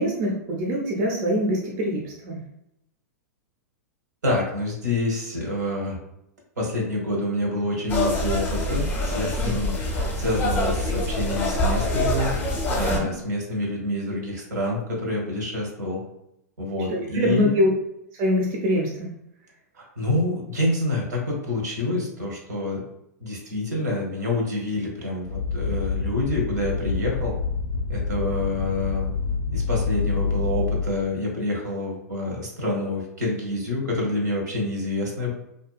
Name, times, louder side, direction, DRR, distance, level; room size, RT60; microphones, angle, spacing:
voice 1, 0.0-2.4 12.8-13.1 16.9-17.7 18.2-19.1, equal, 45° right, -1 dB, 0.6 m, -24 dB
voice 2, 4.2-6.0 6.6-12.3 12.7-16.0 16.6-17.6 19.7-22.8 23.2-27.3 27.9-29.1 29.5-35.3, left 1 dB, 80° right, -1 dB, 1.0 m, -27 dB
sound 1, 7.9-13.0, left 1 dB, 20° left, 0.7 m, -25 dB
sound 2, 25.2-31.0, left 4 dB, 60° left, 0.5 m, -27 dB
2.6 x 2.2 x 2.4 m, 0.81 s
hypercardioid pair, 110°, 9 cm